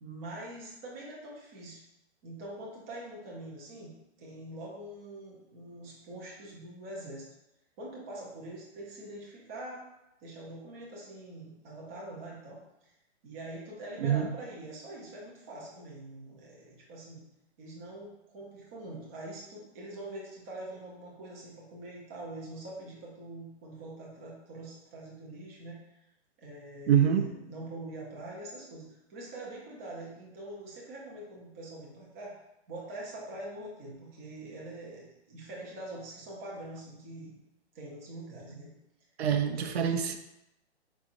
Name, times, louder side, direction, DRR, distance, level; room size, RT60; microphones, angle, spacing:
voice 1, 0.0-1.8 2.2-7.3 7.8-9.9 10.2-12.9 13.2-17.2 17.6-26.1 26.4-32.4 32.7-37.4 37.7-38.7 39.6-39.9, right 1 dB, 15° right, -4 dB, 0.4 m, -44 dB
voice 2, 26.9-27.3 39.2-40.2, right 9 dB, 65° right, 7 dB, 0.6 m, -25 dB
4.7 x 4.1 x 2.5 m, 0.88 s
hypercardioid pair, 150°, 35 cm